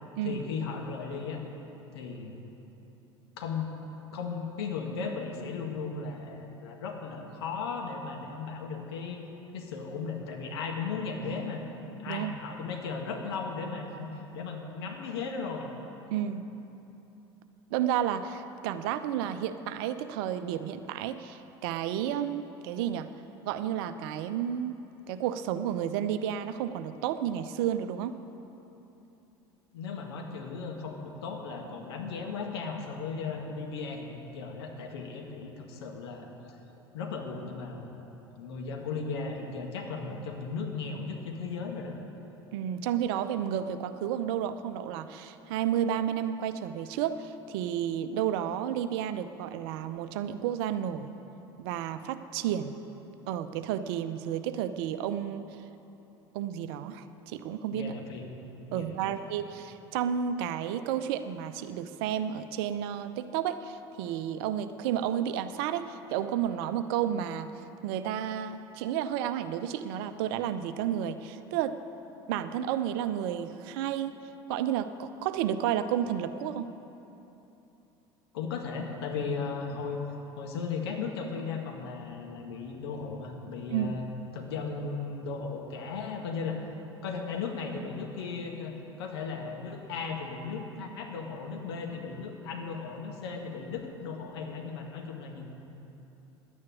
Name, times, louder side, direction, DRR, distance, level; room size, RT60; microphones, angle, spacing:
voice 1, 0.2-1.4 1.9-2.4 3.4-3.7 4.1-9.2 9.5-11.6 12.0-14.1 14.3-15.7 29.7-36.6 36.9-37.9 38.4-41.9 57.7-58.2 58.7-59.2 78.3-80.0 80.4-84.1 84.3-86.6 87.0-95.5, left 5 dB, 70° left, 2 dB, 1.9 m, -36 dB
voice 2, 16.1-16.5 17.7-23.1 23.4-24.8 25.1-28.2 42.5-51.1 51.6-52.8 53.3-55.5 56.3-57.9 58.7-67.5 67.8-71.8 72.3-74.2 74.5-76.7 83.7-83.9, right 10 dB, 65° right, 11 dB, 0.7 m, -31 dB
10.5 x 9.6 x 9.1 m, 3.0 s
hypercardioid pair, 75°, 14 cm